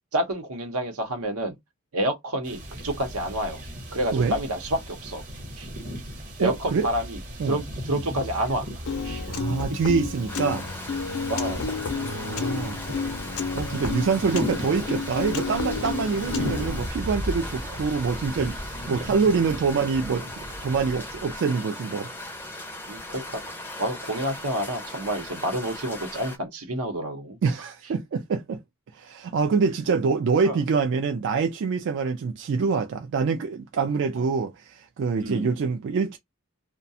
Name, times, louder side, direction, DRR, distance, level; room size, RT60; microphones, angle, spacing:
voice 1, 0.1-1.5 1.9-3.6 3.9-5.2 5.6-5.7 6.4-7.2 7.4-8.7 9.0-9.2 11.3-11.7 22.9-27.4 30.4-30.6 34.2-34.3 35.2-35.5, right 1 dB, 80° right, 0.8 m, -29 dB
sound 1, 2.4-21.4, equal, 40° right, 0.9 m, -37 dB
voice 2, 6.4-6.9 7.4-7.6 9.3-10.6 12.0-12.8 13.5-20.3 20.6-22.1 27.4-28.6 28.9-36.2, right 5 dB, 55° right, 0.3 m, -25 dB
Piano, 8.9-16.9, left 5 dB, 70° left, 0.6 m, -31 dB
sound 2, 10.3-26.4, left 1 dB, 10° left, 0.4 m, -39 dB
2.4 x 2.2 x 2.6 m
head